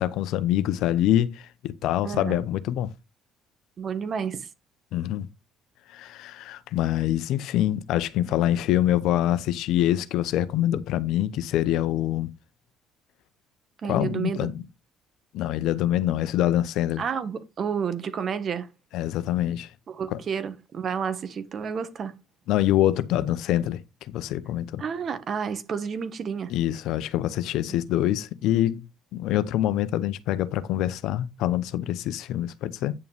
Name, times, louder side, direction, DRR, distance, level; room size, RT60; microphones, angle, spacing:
voice 1, 0.0-2.9 4.9-5.3 5.9-12.3 13.9-14.6 15.3-17.0 18.9-19.7 20.1-20.2 22.5-23.8 24.1-24.8 26.5-28.9 29.1-32.9, left 13 dB, 70° left, 0.8 m, -25 dB
voice 2, 2.0-2.5 3.8-4.5 13.8-14.5 17.0-18.7 19.9-22.1 24.8-26.5, right 7 dB, 50° right, 1.6 m, -30 dB
9.6 x 7.0 x 3.5 m
hypercardioid pair, 65°, 0 cm